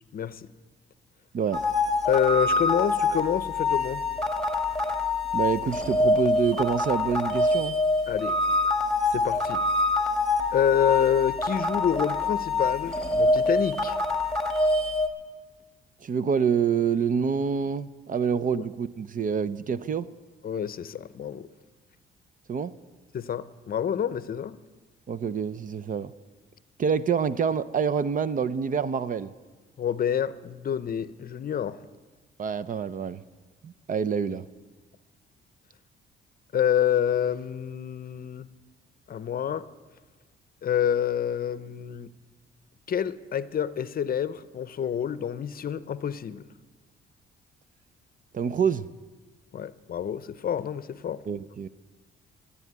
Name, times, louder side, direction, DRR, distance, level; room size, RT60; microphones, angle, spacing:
voice 1, 0.1-0.5 2.1-4.0 8.1-8.4 9.1-9.6 10.5-14.0 18.5-18.6 20.4-21.5 23.1-24.6 29.8-31.8 36.5-38.5 39.1-39.7 40.6-42.1 42.9-46.4 49.5-51.2, left 9 dB, 45° left, 15 dB, 0.7 m, -27 dB
sound 1, 1.5-15.1, left 2 dB, 5° left, 1.7 m, -25 dB
voice 2, 5.3-7.8 16.0-20.1 22.5-22.7 25.1-26.1 26.8-29.3 32.4-33.2 33.6-34.4 48.3-48.9 51.3-51.7, right 6 dB, 45° right, 15 dB, 0.6 m, -27 dB
14.5 x 9.2 x 9.4 m, 1.3 s
cardioid pair, 90°, 20 cm